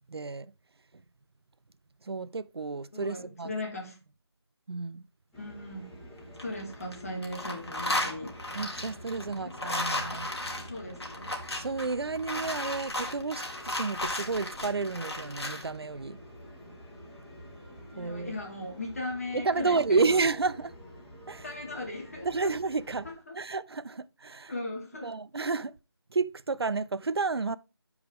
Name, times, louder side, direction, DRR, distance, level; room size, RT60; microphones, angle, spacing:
voice 1, 0.1-0.5 2.0-3.5 4.7-5.0 8.5-10.3 11.6-16.2 18.0-18.4 19.3-20.7 21.3-21.4 22.2-23.1 23.3-24.5 25.0-25.8 26.1-27.6, right 4 dB, 70° right, 0.5 m, -31 dB
voice 2, 2.9-4.0 5.4-6.0 6.4-8.4 9.3-9.4 9.8-10.2 10.5-11.4 17.9-20.2 21.4-22.5 23.0-23.4 24.5-25.1, left 2 dB, 35° left, 1.9 m, -38 dB
sound 1, 5.3-23.1, equal, 5° left, 1.0 m, -48 dB
sound 2, 6.2-7.0 7.2-15.7, left 1 dB, 75° left, 2.3 m, -34 dB
13.0 x 4.8 x 3.5 m
figure-of-eight pair, 165°, 14 cm